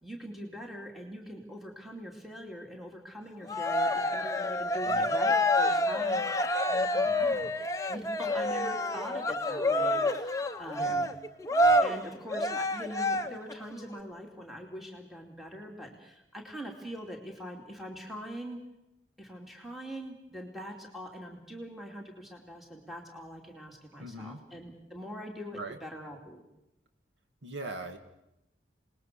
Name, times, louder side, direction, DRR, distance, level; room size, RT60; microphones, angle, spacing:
voice 1, 0.0-7.5 7.9-11.1 11.8-18.6 19.2-26.4, equal, ahead, 1 dB, 2.6 m, -43 dB
Cheering, 3.5-13.5, left 1 dB, 15° left, 0.8 m, -28 dB
voice 2, 4.8-5.2 7.0-7.4 10.7-11.1 24.0-24.4 25.5-25.8 27.4-28.0, right 2 dB, 75° right, 6 dB, 2.4 m, -41 dB
27.0 x 20.0 x 6.7 m, 0.90 s
head